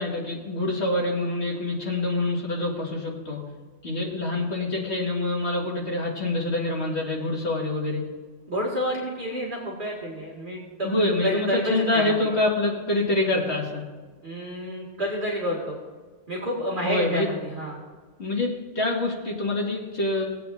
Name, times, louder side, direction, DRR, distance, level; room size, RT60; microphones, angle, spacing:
voice 1, 0.0-3.4 3.8-8.0 10.8-13.8 16.8-17.3 18.2-20.2, left 2 dB, 60° left, -3 dB, 2.6 m, -26 dB
voice 2, 8.5-12.3 14.2-15.8 16.3-17.8, equal, 40° right, -6 dB, 2.5 m, -29 dB
19.5 x 8.5 x 2.7 m, 1.4 s
omnidirectional pair, 1.3 m